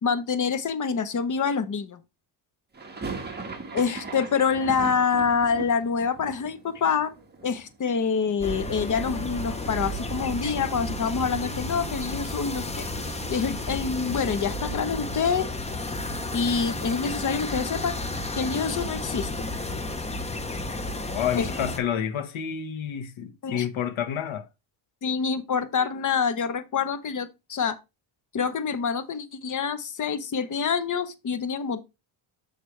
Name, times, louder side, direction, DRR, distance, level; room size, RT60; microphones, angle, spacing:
voice 1, 0.0-2.0 3.7-7.1 7.4-15.5 16.3-18.0 18.4-19.3 21.4-21.5 23.4-23.7 25.0-27.8 28.3-31.8, left 6 dB, 40° left, 0.9 m, -26 dB
sound 1, 2.7-8.7 8.9-9.8 10.1-10.2 10.4-12.6, right 4 dB, 20° right, 1.5 m, -40 dB
sound 2, 8.4-21.8, left 2 dB, 15° left, 0.8 m, -32 dB
Engine, 9.0-18.8, right 7 dB, 35° right, 2.6 m, -44 dB
voice 2, 21.1-24.5, left 9 dB, 75° left, 1.3 m, -29 dB
6.6 x 6.4 x 3.2 m
cardioid pair, 125°, 47 cm